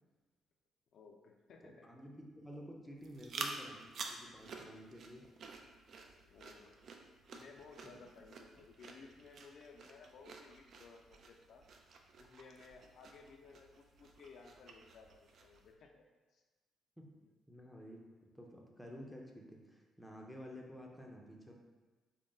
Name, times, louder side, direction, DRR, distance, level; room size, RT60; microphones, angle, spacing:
voice 1, 0.9-1.9 3.1-3.2 6.2-6.8 7.3-11.7 12.2-16.0 16.3-16.4, left 4 dB, 65° left, 2 dB, 0.4 m, -58 dB
voice 2, 1.6-5.3 7.8-7.9 17.0-17.1 17.5-21.5, equal, ahead, -1 dB, 0.5 m, -52 dB
sound 1, 3.0-15.7, right 4 dB, 60° right, 0.4 m, -50 dB
3.7 x 2.1 x 3.7 m, 1.3 s
cardioid pair, 90°, 0 cm